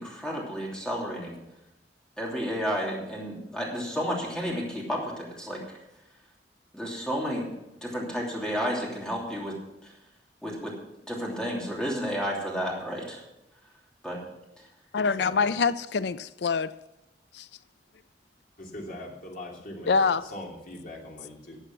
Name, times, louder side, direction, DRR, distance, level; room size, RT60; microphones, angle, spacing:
voice 1, 0.0-1.3 2.2-5.6 6.7-7.5 7.8-9.6 9.8-9.9 10.4-10.7 11.0-13.2 14.0-14.2, equal, 5° left, -3 dB, 2.9 m, -31 dB
voice 2, 14.9-16.7 17.3-17.5 19.9-20.2, left 5 dB, 70° left, 15 dB, 0.5 m, -25 dB
voice 3, 18.6-21.6, left 1 dB, 50° left, -1 dB, 2.8 m, -41 dB
12.5 x 8.0 x 6.0 m, 0.88 s
head